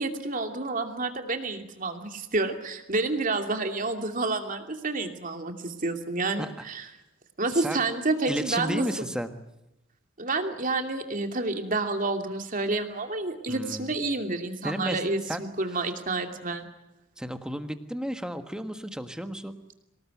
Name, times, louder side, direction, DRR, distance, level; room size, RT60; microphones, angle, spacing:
voice 1, 0.0-6.9 7.4-8.9 10.2-16.7, right 3 dB, 45° right, 5 dB, 2.7 m, -29 dB
voice 2, 7.5-7.8 8.3-9.4 13.5-13.9 14.6-15.0 15.3-15.4 15.7-15.8 17.2-19.6, equal, 5° right, 8 dB, 1.6 m, -33 dB
25.5 x 19.0 x 9.4 m, 0.90 s
head